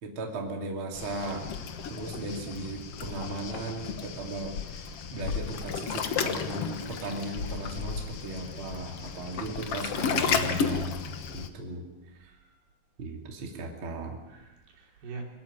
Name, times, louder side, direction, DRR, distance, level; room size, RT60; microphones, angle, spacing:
voice 1, 0.0-1.5 1.9-4.5 5.1-11.0 11.3-11.8 13.0-14.2, right 2 dB, 35° right, 1 dB, 3.0 m, -36 dB
Waves surf, 0.9-11.5, left 6 dB, 85° left, 1.3 m, -33 dB
voice 2, 2.9-3.5 12.2-12.5 14.3-15.2, right 3 dB, 70° right, 0 dB, 5.1 m, -45 dB
23.5 x 13.0 x 9.7 m, 1.1 s
omnidirectional pair, 4.7 m